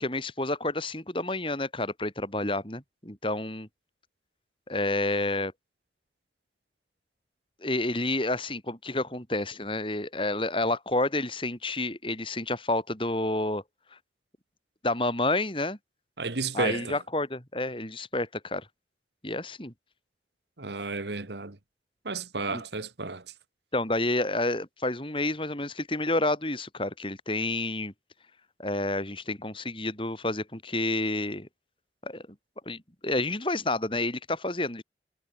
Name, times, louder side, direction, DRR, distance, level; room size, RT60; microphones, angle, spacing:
voice 1, 0.0-3.7 4.7-5.5 7.6-13.6 14.8-15.8 16.5-18.7 19.2-19.7 22.5-22.6 23.7-27.9 28.6-31.5 32.0-32.2 32.7-34.8, left 2 dB, 30° left, 5.7 m, -29 dB
voice 2, 16.2-17.0 20.6-21.6 22.0-23.2, right 3 dB, 80° right, 1.6 m, -32 dB
head